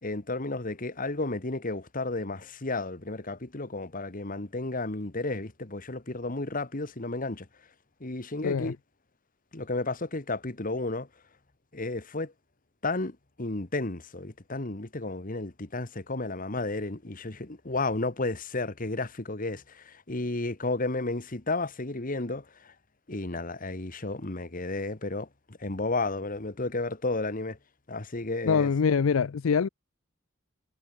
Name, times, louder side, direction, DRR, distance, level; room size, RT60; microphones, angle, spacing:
voice 1, 0.0-7.5 8.0-8.8 9.5-11.1 11.7-12.3 12.8-22.7 23.1-27.6 27.9-28.7, left 2 dB, 40° left, 1.6 m, -32 dB
voice 2, 8.4-8.7 28.4-29.7, left 6 dB, 80° left, 0.5 m, -24 dB
head